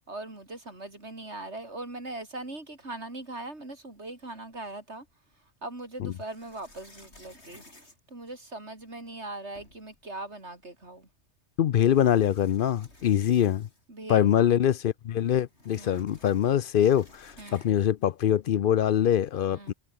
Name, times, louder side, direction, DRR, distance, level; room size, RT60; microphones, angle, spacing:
voice 1, 0.1-5.1 5.6-7.6 8.1-11.1 13.9-14.6 15.8-16.0 17.4-17.6 19.5-19.7, right 2 dB, 85° right, 5.3 m, -40 dB
sound 1, 4.5-5.3 6.1-8.8 9.2-9.3 9.5-10.0 11.1-11.2 11.8-14.0 14.3-14.4 14.7-17.9, left 1 dB, 85° left, 6.7 m, -56 dB
voice 2, 11.6-13.7 14.1-19.7, left 10 dB, 60° left, 0.7 m, -24 dB
omnidirectional pair, 1.1 m